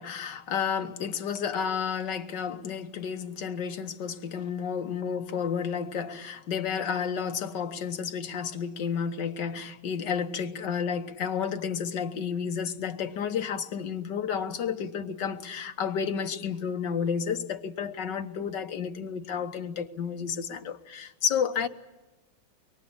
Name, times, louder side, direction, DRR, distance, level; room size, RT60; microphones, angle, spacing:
voice 1, 0.0-21.7, left 7 dB, 60° left, 1.8 m, -31 dB
24.0 x 23.0 x 8.8 m
omnidirectional pair, 2.2 m